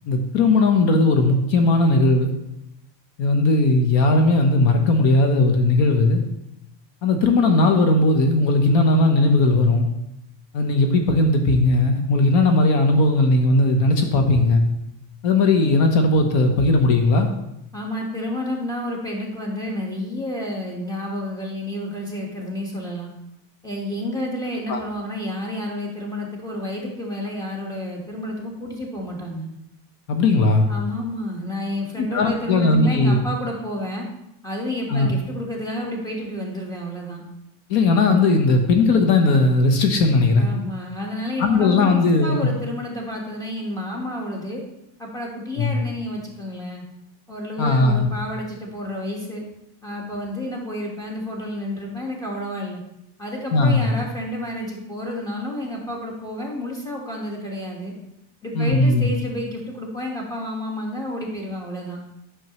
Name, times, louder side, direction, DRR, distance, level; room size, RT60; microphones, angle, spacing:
voice 1, 0.1-2.3 3.2-6.2 7.0-9.9 10.5-14.6 15.2-17.3 24.7-24.8 30.1-30.7 32.0-33.2 34.9-35.1 37.7-40.5 41.4-42.5 45.6-45.8 47.6-48.1 53.5-53.9 58.5-59.1, left 2 dB, 60° left, 5 dB, 1.1 m, -18 dB
voice 2, 17.7-23.1 23.6-29.5 30.7-34.1 34.4-37.2 40.4-44.6 45.0-46.8 47.3-49.4 49.8-52.8 53.2-57.9 58.4-62.0, left 1 dB, 5° left, -2 dB, 1.4 m, -30 dB
9.5 x 6.3 x 3.0 m, 0.83 s
cardioid pair, 155°, 50 cm